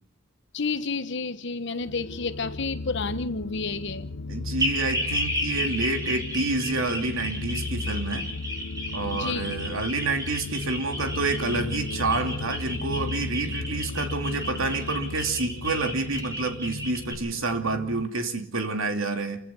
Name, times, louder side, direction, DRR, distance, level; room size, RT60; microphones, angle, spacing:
voice 1, 0.5-4.1 9.1-9.5, left 4 dB, 55° left, 12 dB, 1.2 m, -30 dB
sound 1, 1.8-18.0, left 2 dB, 75° left, 0.9 m, -35 dB
voice 2, 4.3-8.3 8.9-19.4, right 3 dB, 70° right, 6 dB, 2.8 m, -28 dB
sound 2, 4.6-17.1, equal, 15° right, 6.5 m, -33 dB
29.0 x 15.5 x 7.1 m, 0.64 s
head